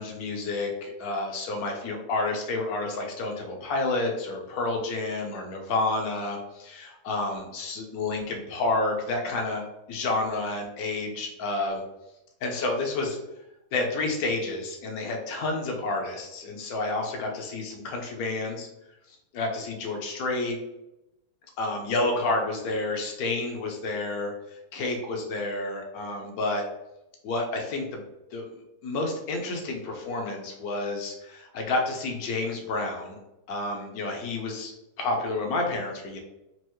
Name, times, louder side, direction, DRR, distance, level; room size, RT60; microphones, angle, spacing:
voice 1, 0.0-11.8 12.4-13.2 13.7-18.7 19.1-20.6 21.6-26.6 27.2-28.0 28.3-28.4 28.8-33.2 33.5-34.7 35.0-36.2, left 2 dB, 65° left, 2 dB, 1.2 m, -30 dB
4.6 x 2.5 x 3.0 m, 0.92 s
omnidirectional pair, 1.7 m